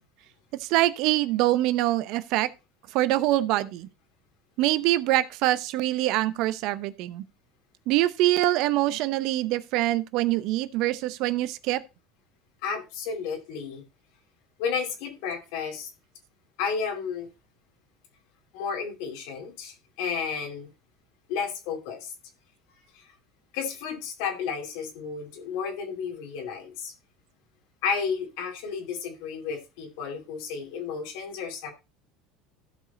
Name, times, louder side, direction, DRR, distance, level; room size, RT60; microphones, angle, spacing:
voice 1, 0.6-2.5 2.9-3.9 4.6-7.2 7.9-11.8, right 15 dB, 65° right, 0.8 m, -24 dB
voice 2, 12.6-13.8 14.6-15.9 16.6-17.3 18.5-20.7 21.3-22.1 22.9-23.0 23.5-26.9 27.8-31.7, left 6 dB, 70° left, 2.6 m, -32 dB
14.5 x 5.1 x 4.0 m
supercardioid pair, 105°, 0 cm